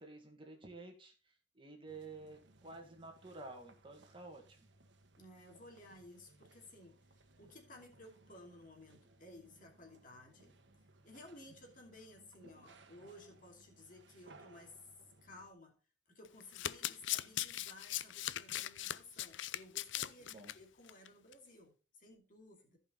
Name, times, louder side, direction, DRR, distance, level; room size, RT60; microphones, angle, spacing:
voice 1, 0.0-4.7 20.3-20.6, right 3 dB, 30° right, 3 dB, 1.8 m, -52 dB
sound 1, 1.9-15.5, right 2 dB, 80° right, 1.2 m, -64 dB
voice 2, 5.2-7.0 7.4-10.5 11.0-14.8 15.2-15.7 16.1-22.8, left 1 dB, 50° left, 2 dB, 2.7 m, -57 dB
Domestic sounds home sounds, 16.2-20.5 20.9-21.1 21.3-21.4, left 13 dB, 85° left, 0.5 m, -39 dB
14.5 x 5.5 x 3.8 m, 0.33 s
head